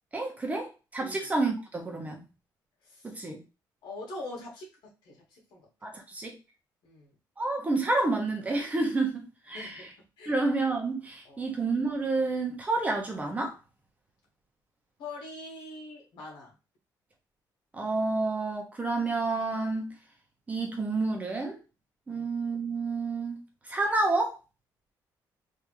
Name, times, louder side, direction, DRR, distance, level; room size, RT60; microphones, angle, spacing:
voice 1, 0.1-2.2 3.0-3.4 5.8-6.4 7.4-9.9 10.3-13.5 17.7-19.9 20.5-21.6 22.1-23.4 23.7-24.4, right 3 dB, 20° right, 0.9 m, -29 dB
voice 2, 1.0-1.3 2.8-3.1 3.8-5.6 6.8-7.1 9.5-9.9 10.2-10.3 11.2-11.5 15.0-16.5 22.1-22.3, left 2 dB, 85° left, 1.7 m, -43 dB
3.5 x 2.7 x 3.0 m
cardioid pair, 150°, 7 cm